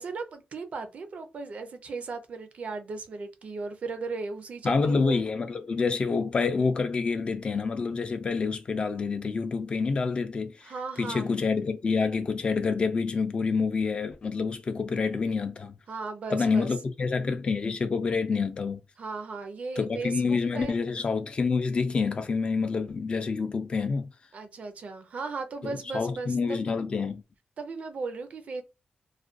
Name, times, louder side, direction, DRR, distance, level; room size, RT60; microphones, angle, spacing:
voice 1, 0.0-5.2 10.6-11.3 15.9-16.7 19.0-20.7 24.3-26.7 27.6-28.6, right 4 dB, 50° right, 0.5 m, -36 dB
voice 2, 4.6-10.7 11.0-15.7 16.3-18.8 19.8-24.1 25.6-27.2, left 4 dB, 35° left, 0.3 m, -27 dB
2.4 x 2.2 x 2.4 m
wide cardioid pair, 170°, 3 cm